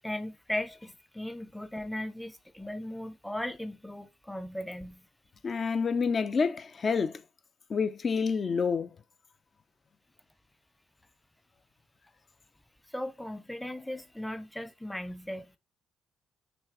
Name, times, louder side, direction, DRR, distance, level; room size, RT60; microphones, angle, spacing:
voice 1, 0.0-5.0 12.9-15.6, left 1 dB, 5° left, 0.8 m, -37 dB
voice 2, 5.4-7.2 7.7-8.9, left 5 dB, 40° left, 0.6 m, -28 dB
6.2 x 3.2 x 4.9 m
cardioid pair, 90°, 0 cm